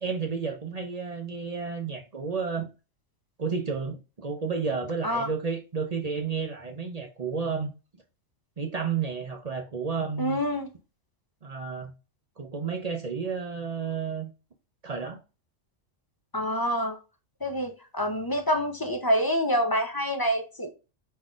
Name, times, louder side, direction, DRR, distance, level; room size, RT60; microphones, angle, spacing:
voice 1, 0.0-2.7 3.4-7.7 8.6-10.4 11.4-11.9 12.4-14.3 14.8-15.2, right 5 dB, 40° right, 0.6 m, -31 dB
voice 2, 10.2-10.7 16.3-17.0 17.4-20.7, equal, 25° left, 0.5 m, -27 dB
5.3 x 3.9 x 2.4 m
omnidirectional pair, 1.3 m